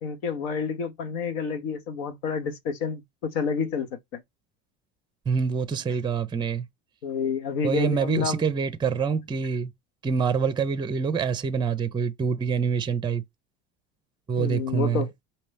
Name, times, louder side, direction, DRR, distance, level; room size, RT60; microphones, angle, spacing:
voice 1, 0.0-4.2 7.0-8.4 14.4-15.1, left 5 dB, 70° left, 1.2 m, -29 dB
voice 2, 5.3-6.6 7.6-9.7 10.0-13.2 14.3-15.1, right 6 dB, 15° right, 0.6 m, -26 dB
5.2 x 2.8 x 3.4 m
hypercardioid pair, 80°, 31 cm